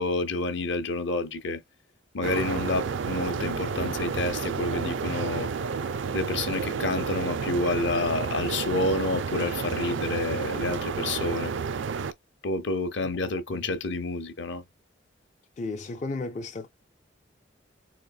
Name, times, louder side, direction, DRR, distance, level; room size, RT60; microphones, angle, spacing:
voice 1, 0.0-1.6 2.1-5.5 6.1-11.5 12.4-14.6, left 2 dB, 60° left, 0.7 m, -29 dB
sound 1, 2.2-12.1, right 5 dB, 70° right, 0.4 m, -31 dB
voice 2, 15.6-16.7, left 3 dB, 35° left, 0.4 m, -34 dB
4.0 x 3.3 x 2.2 m
head